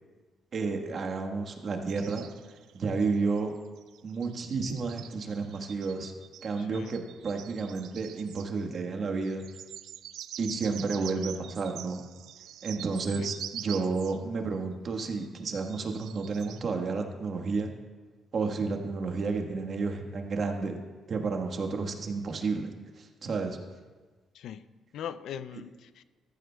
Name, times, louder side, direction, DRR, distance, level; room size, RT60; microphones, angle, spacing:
voice 1, 0.5-2.3 2.7-3.5 4.0-6.1 6.4-9.4 10.4-12.0 12.6-17.7 18.3-20.8 21.1-23.6, right 4 dB, 50° right, 1.3 m, -31 dB
sound 1, 1.9-3.4 3.8-8.8 9.2-14.2 15.0-16.6, right 11 dB, 80° right, 0.4 m, -45 dB
voice 2, 6.6-6.9 10.9-11.1 13.1-13.3 24.3-26.0, left 9 dB, 75° left, 0.4 m, -41 dB
14.5 x 14.0 x 2.3 m
cardioid pair, 90°, 0 cm